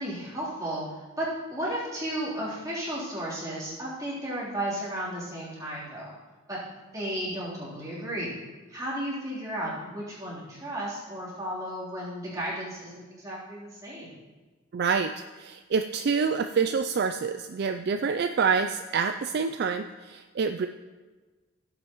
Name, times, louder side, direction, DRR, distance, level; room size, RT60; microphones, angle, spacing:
voice 1, 0.0-6.2 6.5-6.6 6.9-8.3 8.7-14.2, right 1 dB, 15° right, -8 dB, 3.4 m, -34 dB
voice 2, 14.7-20.7, right 5 dB, 50° right, 8 dB, 0.3 m, -27 dB
17.0 x 7.9 x 3.0 m, 1.3 s
head